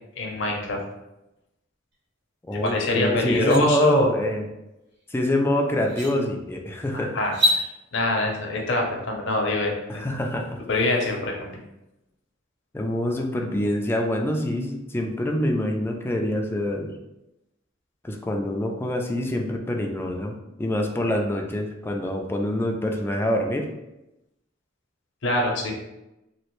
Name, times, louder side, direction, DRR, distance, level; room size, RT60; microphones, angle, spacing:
voice 1, 0.2-0.8 2.5-4.1 7.1-10.1 10.7-11.6 25.2-25.7, left 2 dB, 65° left, 1 dB, 0.6 m, -25 dB
voice 2, 2.5-4.4 5.1-7.2 9.9-10.6 12.7-16.9 18.0-23.7, left 1 dB, 10° left, 1 dB, 0.3 m, -25 dB
sound 1, 2.7-2.8 3.2-3.6 5.2-5.3 5.8-6.1 7.2-7.6, equal, 60° right, 1.0 m, -24 dB
3.0 x 2.4 x 3.0 m, 0.92 s
head